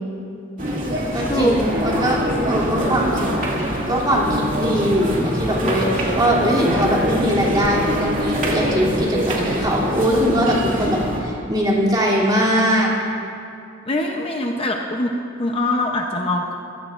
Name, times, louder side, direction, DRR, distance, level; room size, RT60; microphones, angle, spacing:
sound 1, 0.6-11.2, equal, 45° right, 2.3 m, -24 dB
voice 1, 1.1-2.2 2.5-3.3 3.9-12.9, equal, 20° right, -5 dB, 2.9 m, -21 dB
sound 2, 1.2-6.6, left 2 dB, 5° left, 3.9 m, -36 dB
voice 2, 13.9-16.5, left 1 dB, 30° left, 1 dB, 0.8 m, -23 dB
23.5 x 15.5 x 2.5 m, 2.6 s
head